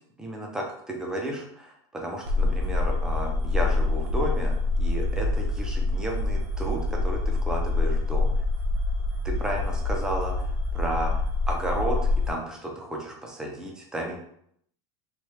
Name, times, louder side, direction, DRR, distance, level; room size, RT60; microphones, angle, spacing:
voice 1, 0.2-8.3 9.2-14.2, right 1 dB, 5° right, 0 dB, 0.5 m, -33 dB
sound 1, 2.3-12.3, left 2 dB, 85° right, 0.7 m, -26 dB
3.1 x 2.3 x 3.1 m, 0.69 s
supercardioid pair, 165°, 14 cm